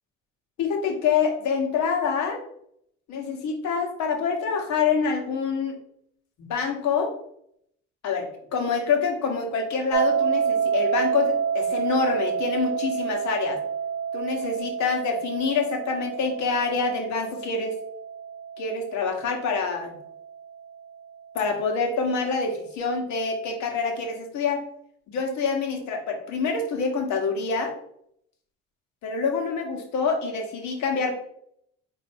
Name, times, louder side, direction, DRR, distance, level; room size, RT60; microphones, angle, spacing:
voice 1, 0.6-2.4 3.1-5.8 6.4-7.1 8.0-13.6 14.1-17.7 18.6-19.9 21.3-24.6 25.1-27.7 29.0-31.1, left 5 dB, 70° left, 2 dB, 1.2 m, -26 dB
sound 1, 9.9-20.8, right 7 dB, 45° right, 0.7 m, -29 dB
4.3 x 2.7 x 4.4 m, 0.70 s
supercardioid pair, 80°, 30 cm